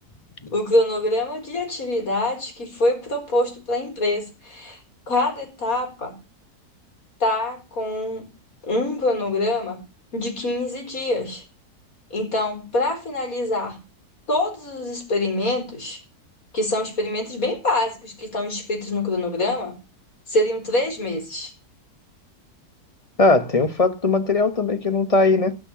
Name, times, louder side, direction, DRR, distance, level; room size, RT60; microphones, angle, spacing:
voice 1, 0.5-4.8 5.1-6.1 7.2-8.3 8.6-9.8 10.1-11.4 12.1-13.8 14.3-16.0 16.5-19.7 20.3-21.5, left 1 dB, 60° left, 4.9 m, -25 dB
voice 2, 23.2-25.6, left 3 dB, 25° left, 1.0 m, -19 dB
16.0 x 6.6 x 7.2 m
omnidirectional pair, 1.7 m